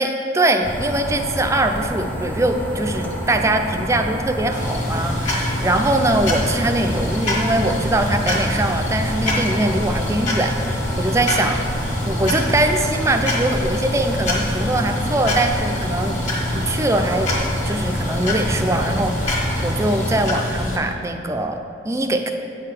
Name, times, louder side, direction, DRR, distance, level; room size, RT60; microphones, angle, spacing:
voice 1, 0.0-11.6 12.0-16.2 16.5-17.3 17.6-21.6 21.8-22.3, right 1 dB, 15° right, 5 dB, 0.4 m, -22 dB
sound 1, 0.6-20.3, equal, 10° left, 0.8 m, -28 dB
sound 2, 4.5-20.8, left 1 dB, 40° left, 1.6 m, -25 dB
8.5 x 3.8 x 6.5 m, 2.7 s
head